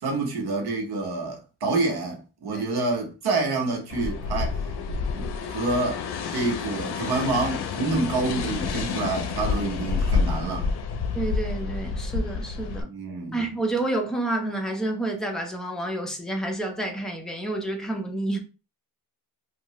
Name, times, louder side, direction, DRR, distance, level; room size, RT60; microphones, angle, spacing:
voice 1, 0.0-4.6 5.2-6.0 6.3-10.7 12.8-13.5, right 3 dB, 75° right, 1.0 m, -27 dB
sound 1, 3.9-12.8, left 5 dB, 80° left, 0.5 m, -29 dB
voice 2, 11.1-12.9 13.3-18.4, right 2 dB, ahead, 0.5 m, -29 dB
2.7 x 2.3 x 3.0 m
wide cardioid pair, 130°, 38 cm